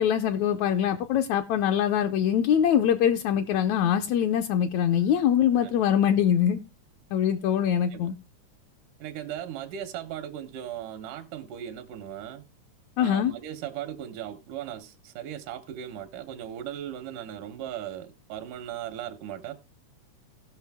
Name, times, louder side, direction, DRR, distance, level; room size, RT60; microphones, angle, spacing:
voice 1, 0.0-6.6 7.1-8.1 13.0-13.3, left 9 dB, 75° left, 1.9 m, -23 dB
voice 2, 9.0-12.5 13.0-19.5, right 10 dB, 90° right, 2.5 m, -38 dB
17.0 x 5.9 x 3.4 m
omnidirectional pair, 3.5 m